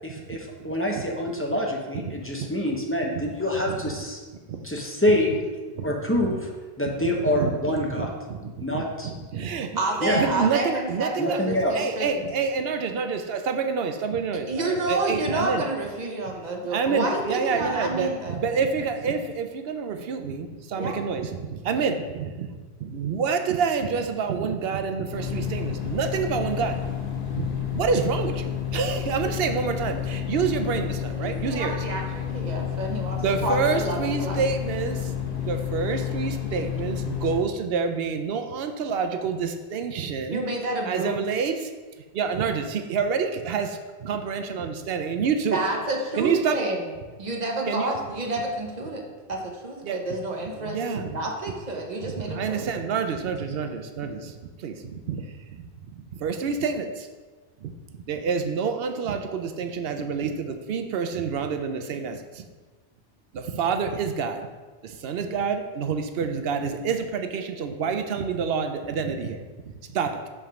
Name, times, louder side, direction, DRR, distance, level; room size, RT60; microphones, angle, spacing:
voice 1, 0.0-4.2 4.6-5.3 5.8-6.4 6.8-8.1 8.6-9.1 10.0-10.2 11.2-11.9, left 1 dB, 15° left, -1 dB, 0.6 m, -26 dB
voice 2, 3.0-3.9 4.5-4.6 5.0-5.5 5.7-6.4 7.0-15.7 16.7-26.8 27.3-27.5 27.7-31.9 33.2-35.1 35.4-40.4 40.8-41.7 42.1-46.7 47.6-48.0 49.8-50.2 50.5-51.2 51.5-51.6 52.0-57.1 57.6-57.7 58.1-62.4 63.3-64.5 64.8-70.2, right 5 dB, 70° right, 7 dB, 0.8 m, -28 dB
voice 3, 9.8-12.2 14.5-18.4 20.7-20.9 31.1-34.5 40.3-41.2 45.5-46.8 47.2-52.6, right 2 dB, 45° right, 1 dB, 0.9 m, -29 dB
sound 1, 25.1-37.4, left 8 dB, 85° left, 1.2 m, -30 dB
5.3 x 3.6 x 5.8 m, 1.3 s
omnidirectional pair, 1.1 m